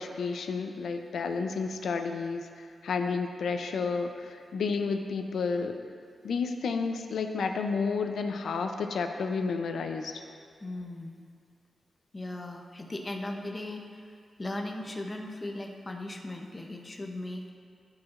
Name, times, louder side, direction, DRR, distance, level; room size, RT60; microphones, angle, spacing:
voice 1, 0.0-5.8 6.2-10.2, left 4 dB, 85° left, 6 dB, 0.5 m, -31 dB
voice 2, 10.6-11.2 12.1-14.0 14.4-17.5, left 1 dB, 25° left, 2 dB, 0.7 m, -37 dB
14.5 x 4.8 x 2.5 m, 2.2 s
wide cardioid pair, 125°, 0 cm